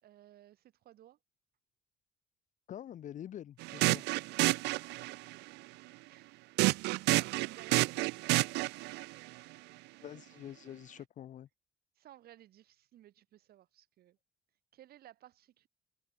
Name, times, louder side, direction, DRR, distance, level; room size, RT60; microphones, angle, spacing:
voice 1, 0.0-1.2 5.1-5.7 6.1-6.3 6.9-8.7 11.9-14.2 14.7-15.7, right 13 dB, 65° right, 3.1 m, -58 dB
voice 2, 2.7-4.0 10.0-11.5, left 10 dB, 50° left, 0.7 m, -46 dB
sound 1, 3.6-5.3 6.6-9.0, right 22 dB, 85° right, 0.5 m, -30 dB
cardioid pair, 110°, 17 cm